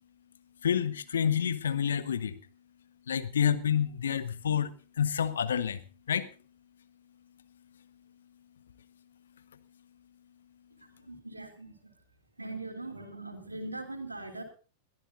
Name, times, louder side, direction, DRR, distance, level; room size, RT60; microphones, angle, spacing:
voice 1, 0.6-2.3 3.1-5.8 6.1-6.3, left 8 dB, 65° left, 13 dB, 1.2 m, -28 dB
voice 2, 10.8-11.9 12.4-14.4, right 2 dB, 85° right, 4 dB, 3.1 m, -41 dB
22.0 x 13.5 x 2.6 m, 0.35 s
figure-of-eight pair, 90°, 0 cm